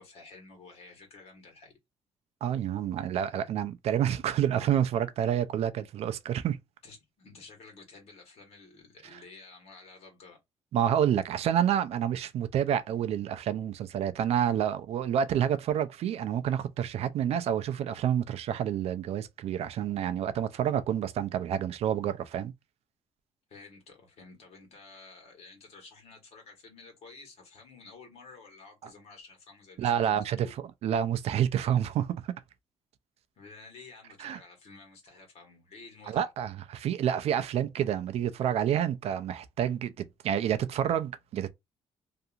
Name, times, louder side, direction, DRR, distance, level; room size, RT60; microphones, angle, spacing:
voice 1, 0.0-1.8 6.8-10.4 23.5-30.5 33.4-36.3, left 3 dB, 70° left, 1.3 m, -51 dB
voice 2, 2.4-6.6 10.7-22.5 29.8-30.5 30.8-32.2 34.2-34.4 36.1-41.5, right 9 dB, 65° right, 0.4 m, -28 dB
2.7 x 2.5 x 2.4 m
cardioid pair, 110°, 11 cm